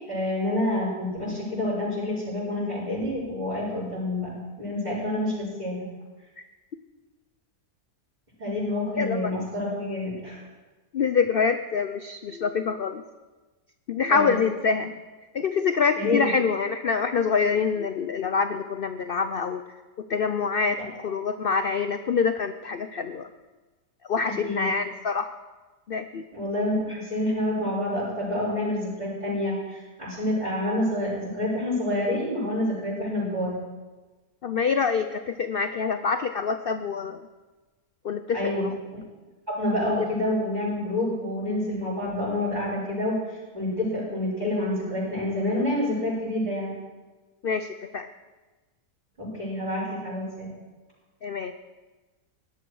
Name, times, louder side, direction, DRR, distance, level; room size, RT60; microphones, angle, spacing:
voice 1, 0.1-4.3 4.6-5.8 8.4-10.4 14.1-14.3 16.0-16.3 20.8-20.9 24.2-24.7 26.3-33.5 38.3-38.7 39.5-43.1 43.5-46.7 49.2-50.5, left 1 dB, 25° right, -12 dB, 6.4 m, -28 dB
voice 2, 9.0-9.3 10.9-13.0 13.9-14.9 15.3-19.6 20.1-20.8 21.0-23.3 24.1-25.3 25.9-26.2 34.4-37.2 38.0-38.7 47.4-48.1 51.2-51.5, left 5 dB, 85° left, 9 dB, 0.5 m, -26 dB
17.0 x 12.0 x 4.8 m, 1.2 s
omnidirectional pair, 1.7 m